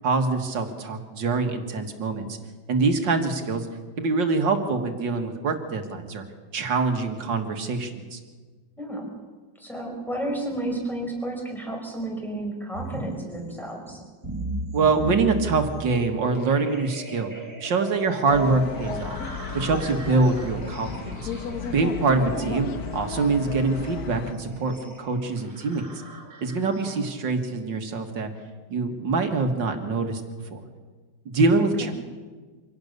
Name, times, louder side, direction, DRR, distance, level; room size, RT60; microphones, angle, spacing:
voice 1, 0.0-2.4 2.7-3.7 4.0-6.2 6.5-8.2 14.7-17.3 17.6-19.2 19.5-21.2 21.7-22.7 22.9-25.9 26.4-28.3 28.7-30.2 30.5-30.6 31.3-31.9, right 3 dB, 75° right, 6 dB, 2.4 m, -24 dB
voice 2, 8.8-9.1 9.6-14.0 22.2-22.5 31.6-31.9, right 1 dB, ahead, 0 dB, 5.1 m, -32 dB
sound 1, 12.7-27.4, right 2 dB, 35° right, 3.8 m, -38 dB
sound 2, 18.3-24.3, left 6 dB, 55° left, 1.6 m, -34 dB
25.0 x 17.5 x 6.7 m, 1.4 s
omnidirectional pair, 2.0 m